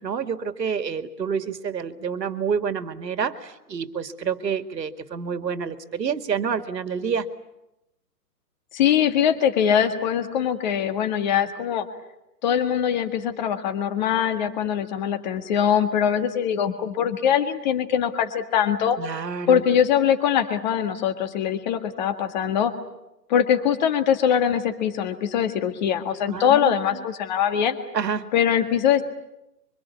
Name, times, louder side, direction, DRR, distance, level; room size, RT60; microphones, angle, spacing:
voice 1, 0.0-7.3 19.0-19.6 26.3-27.0 27.9-28.3, right 6 dB, 80° right, 9 dB, 2.3 m, -28 dB
voice 2, 8.7-11.9 12.4-19.0 19.5-22.7 23.3-27.8 28.3-29.0, left 9 dB, 25° left, 8 dB, 1.9 m, -22 dB
25.5 x 24.5 x 8.5 m, 0.90 s
hypercardioid pair, 160°, 49 cm